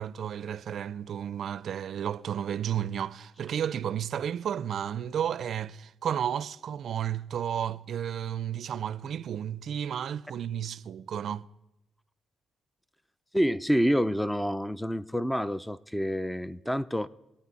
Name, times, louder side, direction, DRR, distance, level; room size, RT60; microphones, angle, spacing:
voice 1, 0.0-11.5, right 9 dB, 60° right, 0.4 m, -32 dB
voice 2, 13.3-17.1, equal, 5° left, 0.4 m, -27 dB
23.0 x 8.9 x 4.1 m
cardioid pair, 90°, 0 cm